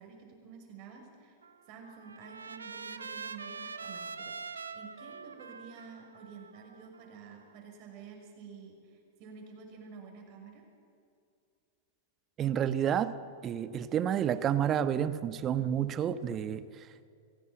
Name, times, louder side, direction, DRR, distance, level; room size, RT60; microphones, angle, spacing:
voice 1, 0.0-1.4 1.7-10.6, right 5 dB, 50° right, 2 dB, 6.1 m, -50 dB
Trumpet, 1.4-7.6, right 5 dB, 80° right, 1.0 m, -44 dB
voice 2, 12.4-13.2 13.4-16.7, right 9 dB, 30° right, 13 dB, 1.1 m, -30 dB
23.5 x 17.0 x 9.0 m, 2.4 s
figure-of-eight pair, 95°, 0 cm